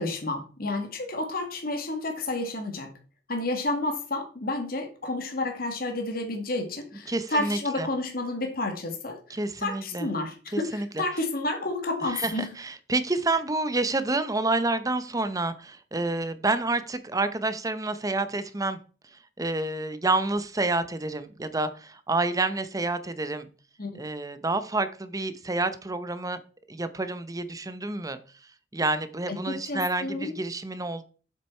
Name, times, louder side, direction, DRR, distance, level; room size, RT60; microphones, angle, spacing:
voice 1, 0.0-2.9 3.3-12.5 23.8-24.0 29.3-30.3, left 2 dB, 60° left, 2.0 m, -30 dB
voice 2, 7.1-7.9 9.3-10.1 10.5-10.9 12.1-18.8 19.4-23.5 23.9-26.4 26.7-28.2 28.7-31.0, right 2 dB, 20° right, 0.8 m, -28 dB
7.7 x 6.7 x 4.4 m
head